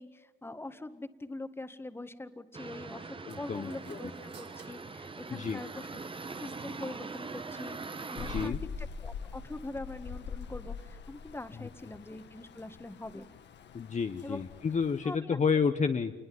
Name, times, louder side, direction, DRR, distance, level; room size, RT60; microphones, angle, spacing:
voice 1, 0.0-6.0 6.4-13.3 14.2-14.4 15.0-15.4, left 2 dB, 10° left, 10 dB, 1.8 m, -43 dB
sound 1, 2.5-8.5, right 4 dB, 25° right, 1.3 m, -42 dB
voice 2, 3.3-4.0 5.3-5.6 8.2-8.6 11.6-11.7 13.7-16.1, left 5 dB, 35° left, 7 dB, 1.1 m, -30 dB
sound 2, 3.3-6.0, right 4 dB, 60° right, 4.1 m, -54 dB
Rain, 8.2-15.2, left 6 dB, 60° left, 1.6 m, -43 dB
28.5 x 21.5 x 9.5 m, 1.2 s
cardioid pair, 90°, 20 cm